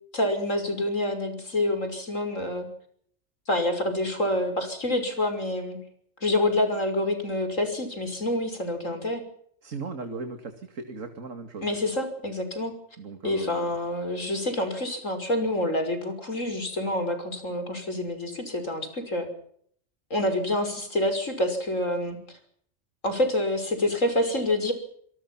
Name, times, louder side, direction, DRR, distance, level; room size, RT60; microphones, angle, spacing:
voice 1, 0.1-2.7 3.5-5.8 6.2-9.2 11.6-12.7 13.2-19.3 20.1-22.4 23.0-24.7, left 1 dB, 85° left, 7 dB, 6.2 m, -27 dB
voice 2, 9.6-11.7 13.0-13.7, right 4 dB, 90° right, 7 dB, 2.5 m, -37 dB
26.5 x 23.0 x 6.0 m, 0.64 s
omnidirectional pair, 1.3 m